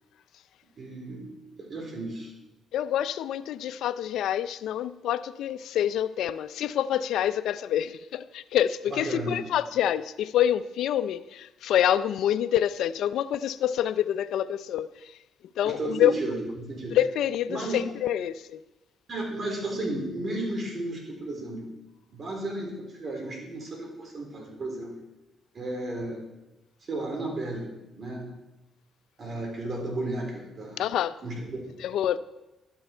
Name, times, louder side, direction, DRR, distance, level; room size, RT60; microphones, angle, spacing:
voice 1, 0.8-1.3 1.6-2.3 8.9-9.4 15.6-16.9 17.5-17.8 19.1-21.7 22.1-24.9 25.5-26.2 26.9-27.7 28.0-28.3 29.2-30.9 31.2-31.7, right 2 dB, 45° right, 4.0 m, -33 dB
voice 2, 2.7-14.9 15.6-16.1 16.9-18.6 30.8-31.2 31.8-32.2, left 10 dB, 80° left, 0.5 m, -27 dB
12.0 x 10.5 x 4.4 m
cardioid pair, 90°, 0 cm